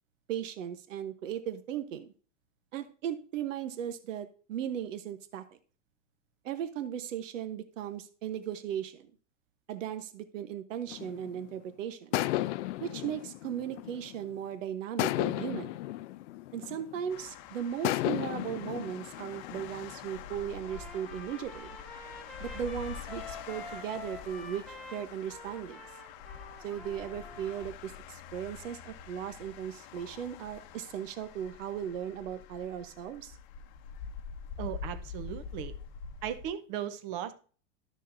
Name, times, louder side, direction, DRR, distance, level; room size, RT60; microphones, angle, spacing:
voice 1, 0.3-2.1 2.7-5.4 6.4-9.1 9.7-12.2 12.8-15.8 16.5-21.8 22.4-25.8 26.6-33.4, right 9 dB, 80° right, 1.0 m, -37 dB
sound 1, 10.9-11.5 12.1-14.4 15.0-17.2 17.8-20.1, left 16 dB, 70° left, 0.5 m, -34 dB
sound 2, 17.1-36.5, left 7 dB, 45° left, 0.8 m, -46 dB
Trumpet, 20.6-27.7, left 3 dB, ahead, 1.3 m, -47 dB
voice 2, 34.6-35.8 36.2-37.3, right 10 dB, 45° right, 0.9 m, -37 dB
12.5 x 6.5 x 2.6 m
supercardioid pair, 140°, 37 cm